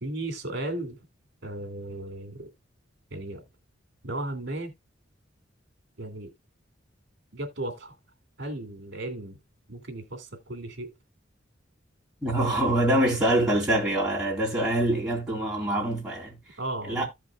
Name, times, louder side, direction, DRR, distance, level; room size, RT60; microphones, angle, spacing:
voice 1, 0.0-1.0 1.4-2.5 3.1-3.4 4.0-4.7 6.0-6.3 7.3-7.9 8.4-9.4 9.7-10.9 16.6-17.0, right 1 dB, 60° right, 2.3 m, -35 dB
voice 2, 12.2-16.4 16.9-17.0, right 1 dB, 5° right, 3.0 m, -25 dB
15.0 x 5.1 x 2.3 m
head